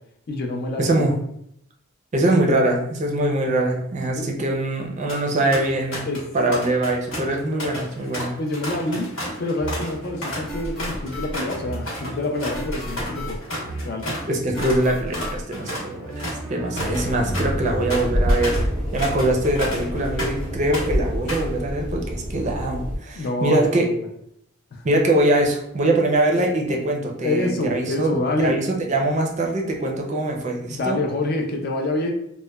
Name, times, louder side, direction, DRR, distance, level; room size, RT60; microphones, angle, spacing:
voice 1, 0.3-1.0 4.1-4.3 6.0-6.6 8.4-9.1 9.4-13.4 13.8-14.2 23.1-24.1 24.7-24.8 27.2-28.5 30.7-32.1, left 2 dB, 50° left, 2 dB, 0.4 m, -26 dB
voice 2, 0.8-1.1 2.1-6.0 6.3-8.3 14.3-18.6 18.9-23.9 24.8-31.0, right 1 dB, 35° right, 1 dB, 0.4 m, -23 dB
sound 1, 5.1-5.2 5.5-6.3 6.5-14.3 14.6-14.8 15.1-20.5 20.7-21.5, equal, 80° left, 1.1 m, -32 dB
sound 2, 9.6-17.9, equal, ahead, 0.7 m, -34 dB
sound 3, 16.8-23.0, equal, 30° left, 0.9 m, -27 dB
3.0 x 2.1 x 2.2 m, 0.73 s
head